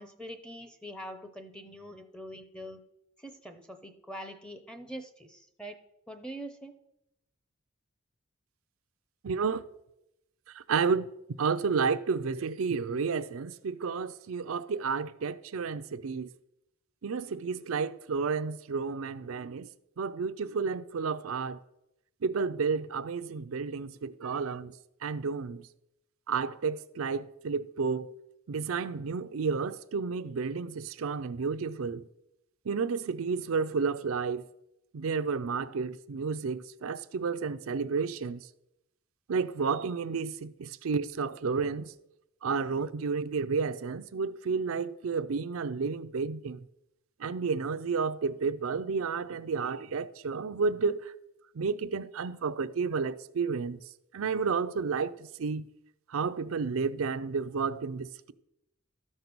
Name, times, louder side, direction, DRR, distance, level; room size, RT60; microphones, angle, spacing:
voice 1, 0.0-2.8 3.2-5.8 6.1-6.7, equal, 5° left, 0.7 m, -44 dB
voice 2, 9.2-9.6 10.5-11.1 11.4-16.3 17.0-19.7 20.0-21.6 22.2-24.7 25.0-25.7 26.3-28.1 28.5-32.0 32.6-34.5 34.9-38.5 39.3-41.9 42.4-46.6 47.2-51.1 51.5-53.8 54.1-55.6 56.1-58.3, right 5 dB, 80° right, 0.5 m, -31 dB
13.0 x 5.3 x 6.0 m
head